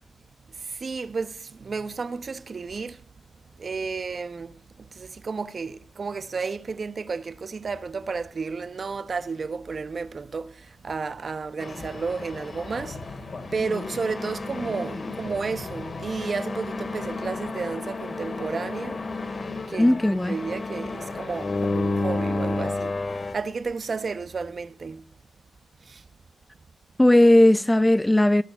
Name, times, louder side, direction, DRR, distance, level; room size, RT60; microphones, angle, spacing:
voice 1, 0.5-3.0 3.6-13.3 13.5-19.1 19.7-20.0 20.3-25.0 25.8-26.0, right 4 dB, 40° right, 1.0 m, -32 dB
sound 1, 11.6-23.3, left 3 dB, 40° left, 2.4 m, -31 dB
voice 2, 19.8-20.4 27.0-28.4, left 1 dB, 10° left, 0.6 m, -17 dB
17.5 x 7.0 x 8.1 m
cardioid pair, 90°, 0 cm